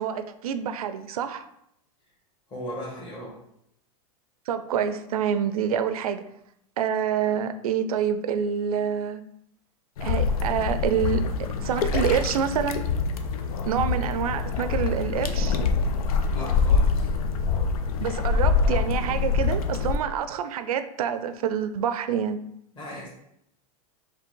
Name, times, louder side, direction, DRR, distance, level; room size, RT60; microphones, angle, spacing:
voice 1, 0.0-1.4 4.5-6.2 6.8-9.2 10.0-11.3 11.6-12.8 13.7-15.6 18.0-22.4, right 8 dB, 80° right, 11 dB, 0.5 m, -27 dB
voice 2, 2.5-3.3 13.5-13.6 16.3-17.1 22.7-23.1, equal, 25° left, -6 dB, 1.5 m, -37 dB
sound 1, 10.0-20.0, left 4 dB, 75° left, 0.6 m, -25 dB
4.7 x 2.9 x 3.8 m, 0.76 s
hypercardioid pair, 125°, 18 cm